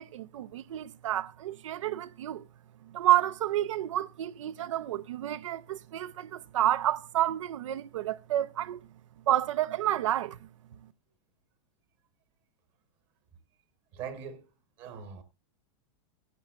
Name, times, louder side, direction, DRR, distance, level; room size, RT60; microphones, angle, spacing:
voice 1, 0.0-2.4 2.9-8.8 9.3-10.4, right 13 dB, 90° right, 0.6 m, -29 dB
voice 2, 13.9-14.5 14.8-15.2, right 7 dB, 30° right, 1.1 m, -41 dB
16.5 x 10.5 x 2.4 m
supercardioid pair, 165°, 16 cm